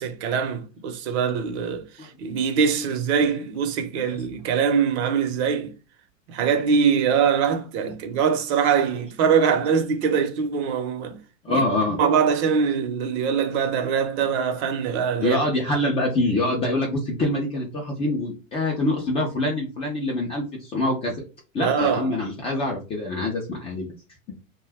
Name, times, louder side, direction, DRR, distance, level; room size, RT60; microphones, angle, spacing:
voice 1, 0.0-5.7 6.3-11.2 11.5-11.6 12.0-15.4 21.6-22.1, right 6 dB, 55° right, 0.8 m, -23 dB
voice 2, 11.4-12.0 15.2-21.2 21.5-23.9, left 1 dB, 15° left, 0.3 m, -25 dB
2.5 x 2.2 x 3.4 m
supercardioid pair, 130°, 39 cm